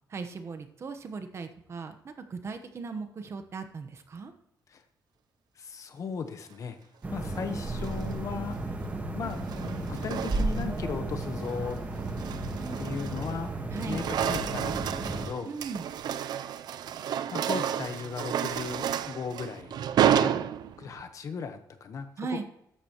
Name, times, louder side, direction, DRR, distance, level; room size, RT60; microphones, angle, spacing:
voice 1, 0.1-4.3 13.7-14.1 15.5-15.8 22.2-22.4, right 4 dB, 40° right, 8 dB, 1.0 m, -38 dB
voice 2, 5.6-6.8 7.1-8.6 9.1-11.8 12.8-13.5 13.9-15.5 17.3-19.8 20.1-20.3 20.8-22.1, left 5 dB, 45° left, 8 dB, 1.1 m, -37 dB
sound 1, 7.0-15.3, right 2 dB, 20° right, 1.4 m, -34 dB
sound 2, 7.6-8.1 9.2-10.8 11.2-11.5 12.0-13.4 13.7-21.0, right 9 dB, 75° right, 0.5 m, -31 dB
13.5 x 10.0 x 3.0 m, 0.81 s
wide cardioid pair, 160°, 7 cm